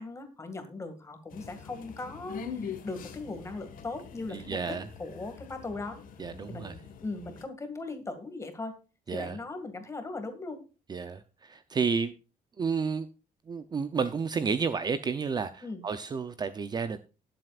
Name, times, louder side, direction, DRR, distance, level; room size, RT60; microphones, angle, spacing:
voice 1, 0.0-6.0 6.5-8.7 9.1-10.6 15.6-15.8, left 3 dB, 20° left, 8 dB, 2.0 m, -39 dB
sound 1, 1.3-7.4, left 6 dB, 60° left, 1.7 m, -44 dB
voice 2, 4.3-4.9 6.2-6.7 9.1-9.4 10.9-12.1 12.6-13.1 13.5-17.0, right 5 dB, 25° right, 11 dB, 0.6 m, -31 dB
19.0 x 7.8 x 2.4 m, 0.33 s
cardioid pair, 170°, 16 cm